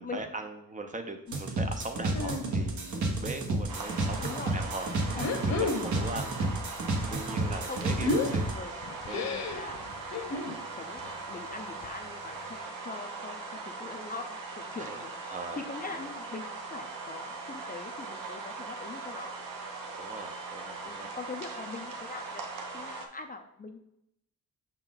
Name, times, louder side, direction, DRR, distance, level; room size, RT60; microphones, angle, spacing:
voice 1, 0.0-6.6 6.9-9.4 14.7-15.0 15.3-16.1 20.0-21.1, right 2 dB, 25° right, 5 dB, 0.6 m, -41 dB
sound 1, 1.3-8.5, right 2 dB, 65° right, 1.2 m, -31 dB
sound 2, 2.1-2.6 2.9-3.7 4.1-4.3 5.0-6.2 6.5-10.6 11.0-11.2 11.5-11.6 11.8-11.9 12.4-12.5, left 3 dB, 55° left, 1.0 m, -33 dB
sound 3, 3.7-23.1, right 3 dB, 85° right, 1.0 m, -40 dB
voice 2, 4.2-4.5 5.1-5.3 7.5-8.7 9.1-13.4 13.7-15.1 15.6-19.3 20.8-22.4 22.7-23.8, left 4 dB, 25° left, 5 dB, 0.5 m, -42 dB
6.1 x 4.4 x 3.9 m, 0.80 s
wide cardioid pair, 130°, 32 cm